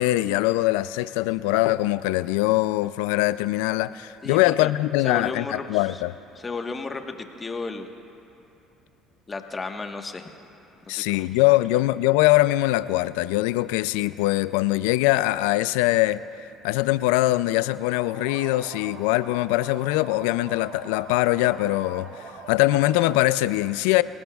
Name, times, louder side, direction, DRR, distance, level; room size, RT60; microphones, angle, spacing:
voice 1, 0.0-6.1 10.9-16.2 16.6-24.0, left 17 dB, 85° left, 0.3 m, -22 dB
voice 2, 4.2-4.7 5.0-6.0 6.3-7.9 9.3-10.3 10.9-11.3, left 4 dB, 30° left, 1.3 m, -33 dB
sound 1, 17.7-23.4, right 5 dB, 85° right, 1.3 m, -43 dB
25.0 x 18.0 x 2.4 m
supercardioid pair, 80°, 0 cm